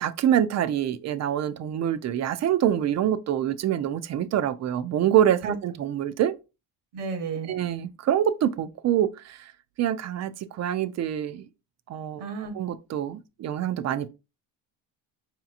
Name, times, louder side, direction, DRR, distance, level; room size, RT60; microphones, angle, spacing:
voice 1, 0.0-6.3 7.5-9.4 9.8-11.4 11.9-12.2 12.5-14.1, right 10 dB, 40° right, 0.4 m, -25 dB
voice 2, 6.9-7.5 12.2-12.5, right 5 dB, 75° right, 1.1 m, -32 dB
5.0 x 2.9 x 2.4 m
cardioid pair, 115°, 42 cm